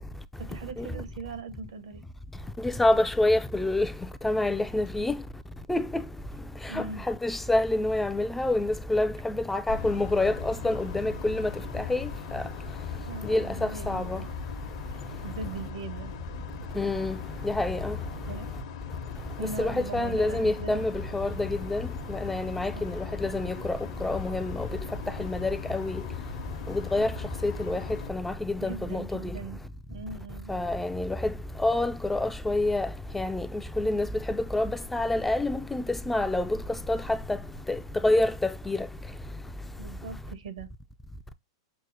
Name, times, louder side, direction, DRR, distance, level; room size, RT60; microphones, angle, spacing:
voice 1, 0.4-2.0 6.7-7.1 13.1-14.3 14.9-16.2 18.3-18.5 19.4-20.9 22.7-22.9 28.6-29.6 29.9-30.7 39.8-40.7, right 4 dB, 80° right, 1.1 m, -40 dB
voice 2, 2.6-3.9 4.2-5.2 5.7-6.0 6.7-12.4 13.2-14.2 16.8-17.2 17.4-18.0 19.6-21.8 22.1-24.7 25.2-26.0 26.7-27.1 27.4-27.8 28.1-29.3 30.5-31.3 31.6-32.9 33.1-33.5 33.8-36.6 36.9-37.2 37.7-38.8, left 2 dB, 5° left, 0.3 m, -27 dB
sound 1, 9.7-28.1, left 7 dB, 60° left, 0.9 m, -39 dB
6.1 x 2.1 x 2.7 m
hypercardioid pair, 120°, 3 cm